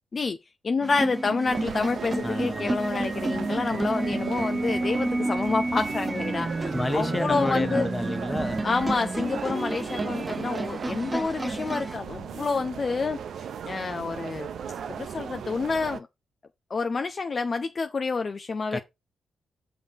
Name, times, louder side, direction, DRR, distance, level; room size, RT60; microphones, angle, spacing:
voice 1, 0.6-7.9 8.6-13.2 13.6-14.5 14.9-16.1 16.7-18.8, left 4 dB, 45° left, 0.6 m, -28 dB
sound 1, 0.8-12.0, right 2 dB, 25° right, 0.7 m, -30 dB
sound 2, 1.4-16.0, right 8 dB, 70° right, 0.6 m, -37 dB
voice 2, 2.2-2.8 6.7-8.6 18.7-18.8, left 2 dB, 20° left, 1.3 m, -30 dB
6.1 x 3.8 x 5.9 m
supercardioid pair, 45°, 0 cm